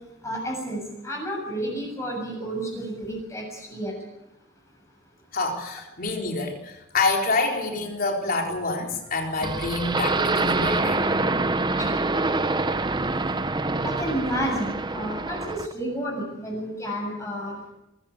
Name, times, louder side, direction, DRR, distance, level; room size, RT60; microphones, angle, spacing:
voice 1, 0.2-3.9 11.8-11.9 13.8-17.7, equal, 15° left, 0 dB, 7.2 m, -31 dB
voice 2, 5.3-11.0, left 3 dB, 45° left, 1 dB, 4.4 m, -27 dB
sound 1, 9.4-15.7, right 3 dB, 20° right, 0.8 m, -25 dB
23.0 x 15.5 x 8.4 m, 0.92 s
head